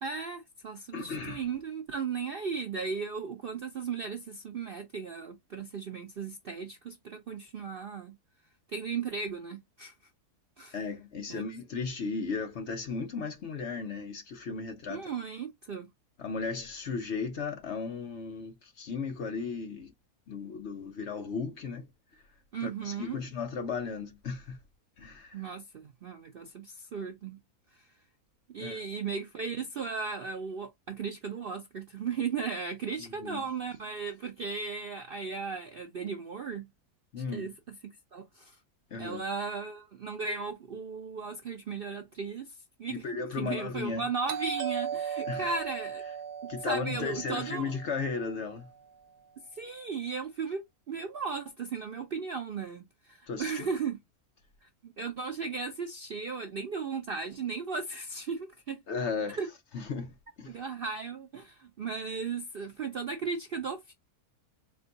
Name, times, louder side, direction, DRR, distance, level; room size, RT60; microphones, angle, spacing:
voice 1, 0.0-8.2 8.7-9.9 10.6-10.8 11.3-11.5 14.9-15.9 22.5-23.2 25.3-27.4 27.7-27.8 28.5-36.7 37.3-37.7 38.1-38.6 39.0-43.1 43.4-46.0 46.4-47.8 49.5-54.0 54.6-58.8 59.4-59.5 60.5-63.9, right 5 dB, 60° right, 0.6 m, -36 dB
voice 2, 0.9-1.4 10.7-15.1 16.2-19.9 20.3-21.9 22.6-24.6 25.0-25.4 28.6-28.8 33.0-33.4 37.1-37.5 38.9-39.2 42.9-44.1 45.2-45.5 46.5-48.7 53.3-53.7 58.9-59.4 59.7-60.6, left 5 dB, 55° left, 0.8 m, -35 dB
Doorbell, 44.3-48.9, right 7 dB, 90° right, 1.2 m, -38 dB
4.4 x 2.2 x 3.8 m
omnidirectional pair, 1.6 m